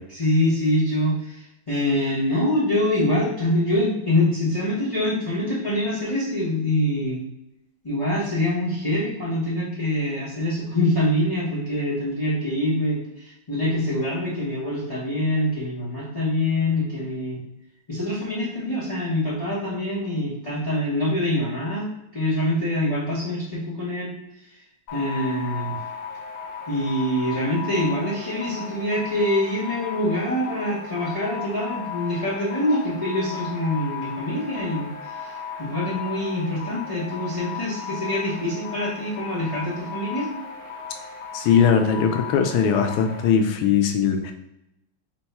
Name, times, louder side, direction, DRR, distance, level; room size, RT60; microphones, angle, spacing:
voice 1, 0.1-7.2 7.8-17.4 17.9-21.9 22.1-24.1 24.9-25.7 26.7-34.9 35.2-35.3 35.6-40.3, left 1 dB, 40° left, -9 dB, 0.4 m, -25 dB
sound 1, 24.9-43.2, left 6 dB, 65° left, 1.2 m, -36 dB
voice 2, 41.3-44.3, left 7 dB, 80° left, 6 dB, 1.5 m, -20 dB
4.5 x 2.2 x 4.2 m, 0.85 s
omnidirectional pair, 2.4 m